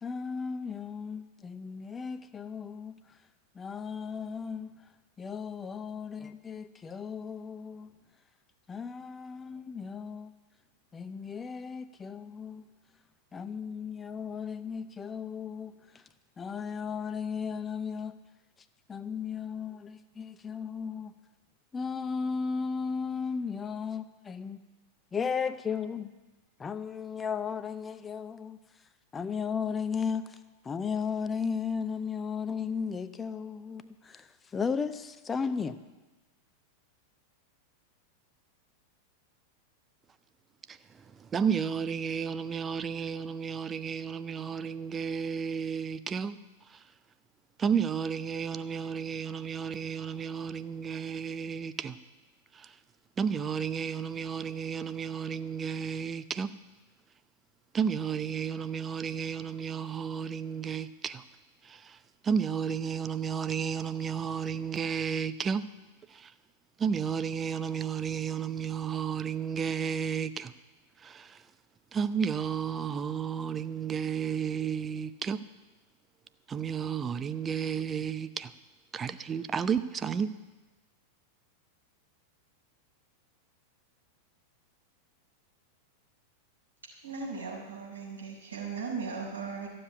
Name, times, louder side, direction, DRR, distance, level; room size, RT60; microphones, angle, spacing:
voice 1, 0.0-3.0 3.5-4.8 5.2-7.9 8.7-10.3 10.9-12.6 13.3-16.0 16.4-18.2 18.9-21.1 21.7-24.6 25.1-26.1 26.6-28.6 29.1-30.4 30.6-35.8, left 6 dB, 20° left, 0.8 m, -35 dB
voice 2, 40.7-46.4 46.7-46.8 47.6-52.0 52.5-52.8 53.2-56.5 57.7-61.2 61.6-62.0 62.2-65.6 66.1-66.3 66.8-70.5 71.0-71.4 71.9-75.4 76.5-78.5 78.9-80.3, right 7 dB, 20° right, 0.6 m, -32 dB
voice 3, 87.0-89.7, right 5 dB, 75° right, 4.8 m, -37 dB
14.5 x 7.7 x 9.5 m
figure-of-eight pair, 90°, 0 cm